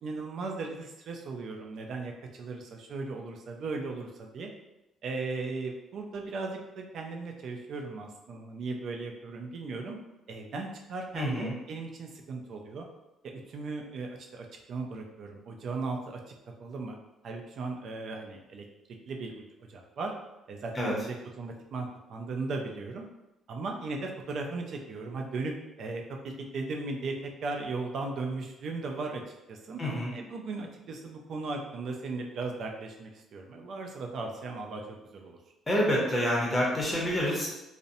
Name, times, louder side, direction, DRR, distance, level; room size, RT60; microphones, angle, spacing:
voice 1, 0.0-4.5 5.0-10.0 10.3-12.9 13.3-16.2 16.6-17.0 17.2-18.6 19.1-19.4 19.7-20.1 20.5-23.1 23.5-29.2 29.5-29.8 30.1-35.4, right 3 dB, 55° right, 2 dB, 0.4 m, -37 dB
voice 2, 11.1-11.5 20.7-20.9 29.8-30.1 35.7-37.5, equal, 15° left, -4 dB, 0.7 m, -27 dB
2.6 x 2.0 x 2.6 m, 0.95 s
cardioid pair, 125°, 0 cm